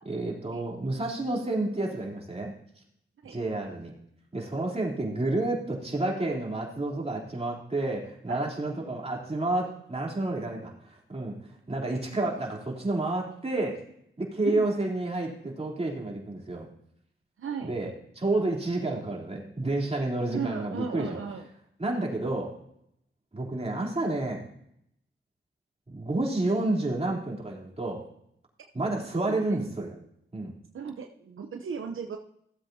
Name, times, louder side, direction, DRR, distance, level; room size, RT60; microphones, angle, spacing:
voice 1, 0.0-2.5 3.3-3.9 4.3-13.8 14.2-16.7 17.6-21.2 21.8-22.5 23.3-24.4 25.9-28.0 28.7-29.9 30.3-30.5, right 2 dB, 30° right, -2 dB, 3.5 m, -30 dB
voice 2, 17.4-17.7 20.3-21.5 29.3-29.4 30.7-32.2, right 6 dB, 80° right, 4 dB, 0.8 m, -35 dB
16.5 x 7.9 x 2.8 m, 0.71 s
cardioid pair, 55°, 21 cm